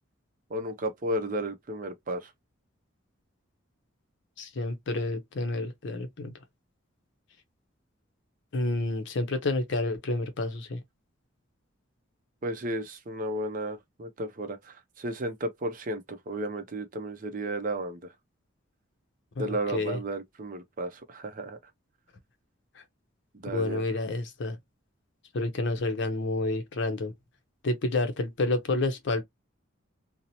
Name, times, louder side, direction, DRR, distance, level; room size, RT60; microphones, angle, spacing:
voice 1, 0.5-2.3 12.4-18.1 19.4-21.6 23.3-23.8, right 1 dB, 40° right, 0.5 m, -33 dB
voice 2, 4.4-6.3 8.5-10.8 19.4-20.0 22.8-22.9 23.5-24.6 25.3-27.1 27.6-29.2, left 2 dB, 60° left, 0.6 m, -29 dB
2.7 x 2.0 x 2.8 m
head